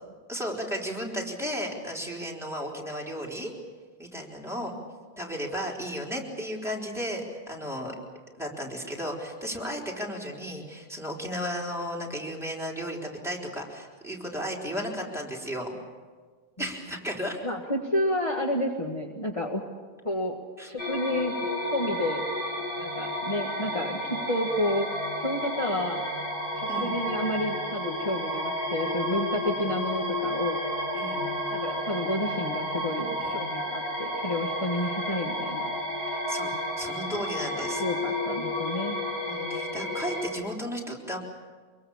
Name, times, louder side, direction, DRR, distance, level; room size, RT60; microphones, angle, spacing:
voice 1, 0.3-3.5 4.0-4.7 5.2-8.0 8.4-15.7 16.6-17.4 20.6-20.7 26.7-27.0 30.9-31.3 33.2-33.4 36.1-37.8 39.3-41.2, equal, 5° right, -2 dB, 3.9 m, -34 dB
voice 2, 17.4-19.6 20.1-20.4 20.7-22.2 22.8-24.9 25.2-26.0 26.6-30.6 31.5-35.7 37.6-39.0, left 1 dB, 30° left, 0 dB, 1.7 m, -30 dB
sound 1, 20.8-40.3, left 1 dB, 70° left, 6.8 m, -31 dB
24.5 x 23.0 x 7.2 m, 1.5 s
omnidirectional pair, 1.0 m